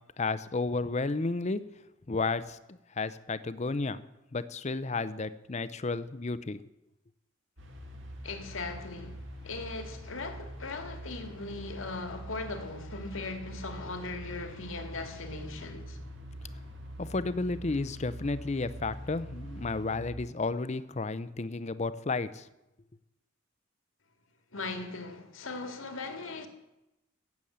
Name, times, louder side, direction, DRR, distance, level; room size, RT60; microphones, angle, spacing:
voice 1, 0.2-1.6 2.1-4.0 4.3-6.6 17.0-22.5, left 3 dB, 35° left, 0.6 m, -32 dB
sound 1, 7.6-20.1, equal, 65° right, 2.1 m, -44 dB
voice 2, 8.2-16.0 24.5-26.5, left 3 dB, 80° left, 2.0 m, -39 dB
15.5 x 7.2 x 8.7 m
head